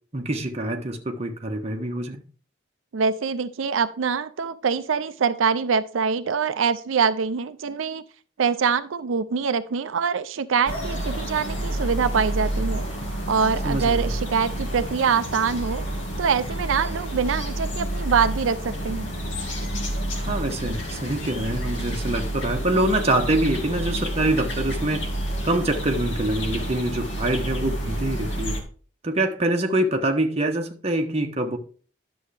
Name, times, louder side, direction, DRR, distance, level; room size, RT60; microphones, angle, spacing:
voice 1, 0.1-2.2 13.6-14.1 20.2-25.0 25.4-28.6 29.0-31.6, right 1 dB, 35° right, 1.1 m, -25 dB
voice 2, 2.9-8.0 8.4-12.8 13.3-15.8 16.2-19.1, right 6 dB, 90° right, 0.5 m, -24 dB
sound 1, 10.7-28.6, right 1 dB, 75° left, 2.0 m, -29 dB
11.0 x 6.9 x 3.3 m
head